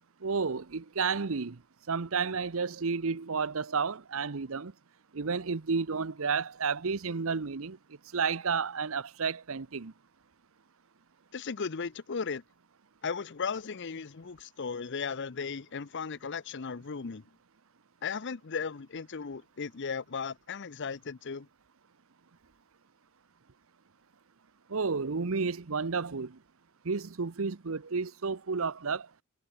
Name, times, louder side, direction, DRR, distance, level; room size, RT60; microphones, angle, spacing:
voice 1, 0.2-1.6 1.9-4.7 5.1-7.8 8.1-9.9 24.7-26.4 26.8-29.1, right 5 dB, 65° right, 0.8 m, -31 dB
voice 2, 11.3-12.4 13.0-17.2 18.0-21.5, left 5 dB, 55° left, 0.7 m, -36 dB
head